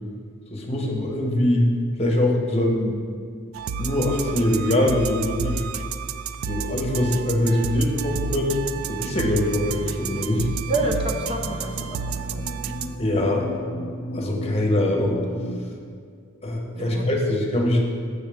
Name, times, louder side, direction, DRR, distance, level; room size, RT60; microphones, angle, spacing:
voice 1, 0.5-1.7 2.0-3.0 3.8-5.6 6.5-8.6 8.9-10.5 13.0-13.5 14.1-15.2 16.4-17.8, left 1 dB, 30° left, 0 dB, 1.0 m, -23 dB
sound 1, 3.5-13.0, right 5 dB, 80° right, 0.3 m, -31 dB
sound 2, 6.1-15.6, equal, 85° left, 0.5 m, -36 dB
voice 2, 10.7-12.6 16.8-17.1, right 2 dB, 30° right, 2 dB, 0.5 m, -29 dB
8.0 x 6.7 x 3.5 m, 2.1 s
head